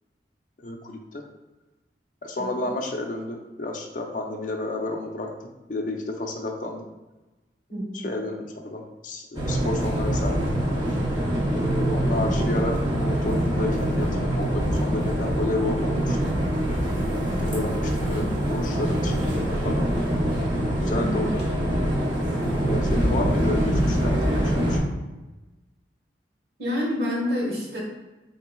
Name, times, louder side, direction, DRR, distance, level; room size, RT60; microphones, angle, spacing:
voice 1, 0.6-1.2 2.2-6.8 7.9-10.6 11.5-16.2 17.1-20.1 20.8-21.4 22.6-24.8, left 2 dB, 45° left, 3 dB, 0.4 m, -31 dB
voice 2, 2.4-2.7 7.7-8.1 18.2-18.3 21.0-21.3 26.6-27.8, left 1 dB, 55° right, -4 dB, 1.2 m, -29 dB
sound 1, 9.3-24.8, equal, 25° right, 0.7 m, -24 dB
4.2 x 3.8 x 2.2 m, 1.1 s
head